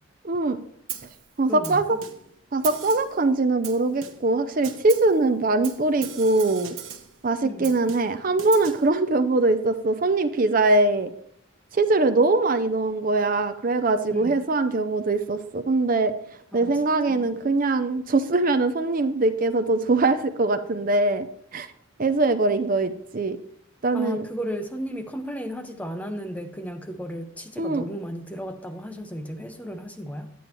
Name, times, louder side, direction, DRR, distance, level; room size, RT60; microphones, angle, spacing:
voice 1, 0.2-0.6 1.4-2.0 2.5-6.7 7.2-11.1 11.7-16.1 16.5-21.3 21.5-21.7 22.0-23.4 23.8-24.2 27.6-27.8, right 2 dB, 40° right, 10 dB, 0.5 m, -22 dB
Snare drum, 0.9-1.2 1.6-2.3 2.6-3.2 3.6-4.3 4.6-5.2 5.6-7.2 7.6-8.9, right 9 dB, 70° right, 1.1 m, -38 dB
voice 2, 1.5-2.0 7.4-7.7 14.1-14.4 16.5-16.8 17.1-17.3 23.9-30.3, equal, 5° left, 7 dB, 0.6 m, -34 dB
10.0 x 9.2 x 3.1 m, 0.68 s
head